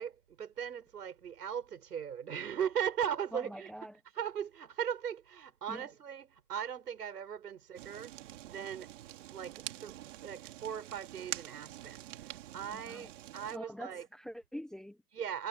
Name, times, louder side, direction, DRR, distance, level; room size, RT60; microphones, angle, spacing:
voice 1, 0.0-3.7 4.1-8.9 9.3-14.1 15.1-15.5, right 8 dB, 85° right, 6.5 m, -39 dB
voice 2, 3.3-4.0 5.7-5.9 12.7-13.1 13.5-15.0, equal, ahead, 0.9 m, -45 dB
Fire, 7.8-13.6, right 14 dB, 50° right, 3.0 m, -46 dB
hypercardioid pair, 155°, 46 cm